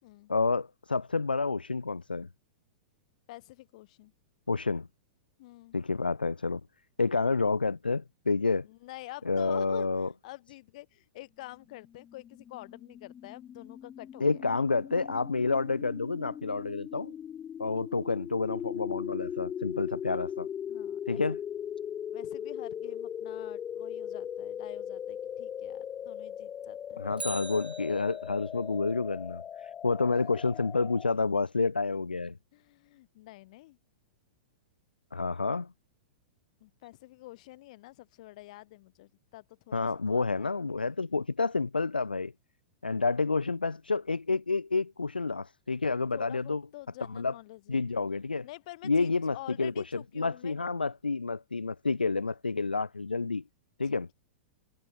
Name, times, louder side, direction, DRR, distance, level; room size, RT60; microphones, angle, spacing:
voice 1, 0.3-2.3 4.5-4.9 5.7-6.6 7.0-8.7 9.3-10.1 14.2-17.1 17.6-20.5 21.1-21.4 27.0-32.4 35.1-35.7 39.7-42.3 42.8-46.6 47.1-47.3 47.7-48.5 48.8-53.4 53.8-54.1, left 4 dB, 85° left, 0.4 m, -29 dB
voice 2, 3.3-4.1 5.4-5.8 8.6-14.4 17.7-17.8 20.7-21.2 22.1-27.0 32.5-33.8 36.6-40.5 46.1-47.8 48.4-50.6 53.8-54.0, left 18 dB, 50° left, 4.1 m, -48 dB
sound 1, 12.0-31.1, left 9 dB, 20° left, 1.0 m, -39 dB
Bicycle, 27.1-28.5 36.8-36.9, right 2 dB, 85° right, 1.8 m, -42 dB
figure-of-eight pair, 100°, 5 cm